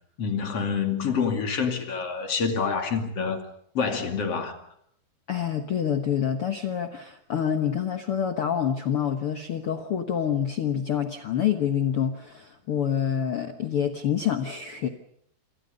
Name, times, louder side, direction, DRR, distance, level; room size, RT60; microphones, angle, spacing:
voice 1, 0.2-3.4 3.7-4.6, left 5 dB, 40° left, 3.2 m, -27 dB
voice 2, 5.3-14.9, left 8 dB, 75° left, 1.3 m, -27 dB
27.5 x 27.0 x 5.3 m
omnidirectional pair, 4.6 m